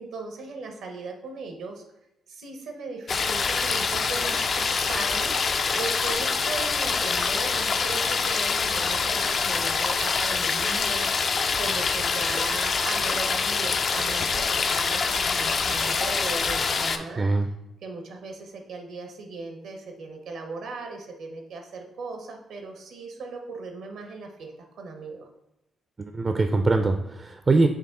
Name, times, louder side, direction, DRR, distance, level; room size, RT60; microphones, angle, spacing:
voice 1, 0.0-1.8 2.3-5.3 5.7-17.2 17.8-25.3, right 3 dB, 80° right, 3 dB, 0.7 m, -38 dB
sound 1, 3.1-17.0, left 5 dB, 55° left, 0.4 m, -25 dB
voice 2, 17.2-17.5 26.0-27.7, right 3 dB, 35° right, 6 dB, 0.3 m, -22 dB
4.7 x 2.6 x 3.7 m, 0.88 s
supercardioid pair, 60°, 0 cm